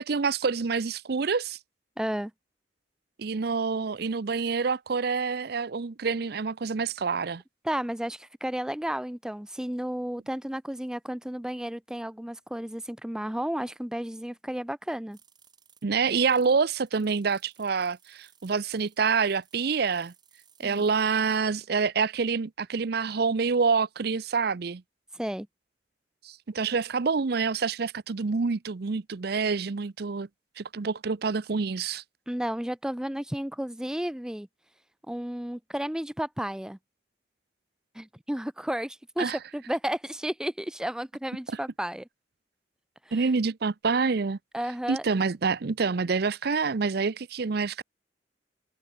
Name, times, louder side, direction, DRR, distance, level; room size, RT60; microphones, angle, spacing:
voice 1, 0.0-1.6 3.2-7.4 15.8-20.1 20.6-24.8 26.2-30.3 30.6-32.0 39.2-39.4 43.1-44.4 44.9-47.8, right 5 dB, 60° right, 0.6 m, -27 dB
voice 2, 2.0-2.3 7.6-15.2 20.6-20.9 25.1-25.5 32.3-34.5 35.1-36.8 37.9-42.1 43.1-43.3 44.5-45.0, equal, 5° right, 0.4 m, -32 dB
sound 1, 15.1-16.5 16.9-21.4, right 7 dB, 25° right, 2.9 m, -61 dB
head